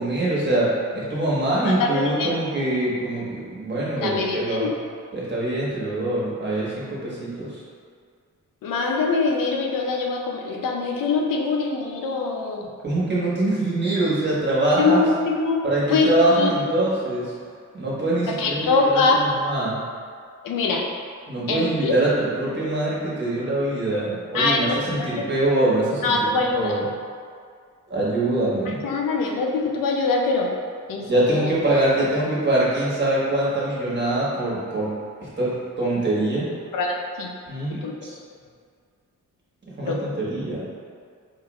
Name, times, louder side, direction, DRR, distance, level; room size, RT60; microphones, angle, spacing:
voice 1, 0.0-4.7 5.1-7.6 12.8-15.0 15.6-17.3 17.7-19.8 21.3-26.8 27.9-28.8 30.9-34.9 35.2-36.5 37.5-38.2 39.8-40.6, right 1 dB, 35° right, -7 dB, 1.3 m, -24 dB
voice 2, 1.7-2.3 4.0-4.7 8.6-12.7 14.8-15.6 15.9-16.8 18.3-19.3 20.4-20.8 21.5-22.0 24.3-25.3 26.0-26.7 28.7-30.5 30.9-31.5 36.7-37.3 37.8-37.9 39.8-40.0, left 3 dB, 85° left, 1 dB, 0.5 m, -23 dB
4.4 x 2.4 x 3.0 m, 2.1 s
cardioid pair, 70°, 32 cm